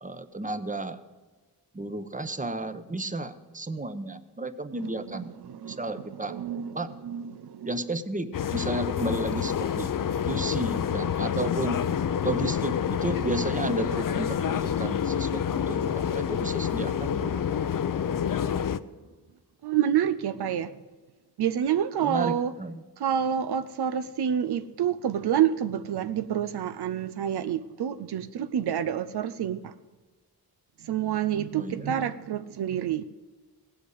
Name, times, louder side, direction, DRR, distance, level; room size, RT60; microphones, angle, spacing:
voice 1, 0.0-1.0 1.7-5.3 5.7-6.4 6.7-6.9 7.6-9.9 10.3-11.8 12.2-17.3 22.0-22.8 31.6-31.9, right 2 dB, 20° right, 11 dB, 0.9 m, -32 dB
voice 2, 4.8-7.7 19.6-20.7 21.4-22.5 23.0-29.7 30.8-33.1, right 9 dB, 85° right, 11 dB, 0.6 m, -28 dB
sound 1, 8.3-18.8, left 8 dB, 55° left, 0.6 m, -28 dB
17.0 x 8.0 x 8.0 m, 1.3 s
cardioid pair, 75°, 38 cm